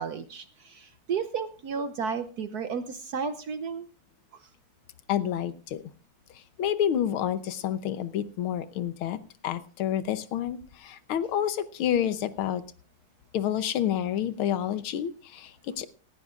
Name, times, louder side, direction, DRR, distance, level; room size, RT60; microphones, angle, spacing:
voice 1, 0.0-3.9 4.3-4.4, right 6 dB, 65° right, 10 dB, 1.1 m, -33 dB
voice 2, 5.1-5.8 6.6-12.6 13.3-15.9, left 10 dB, 80° left, 12 dB, 1.7 m, -29 dB
18.0 x 16.0 x 2.5 m, 0.38 s
omnidirectional pair, 2.3 m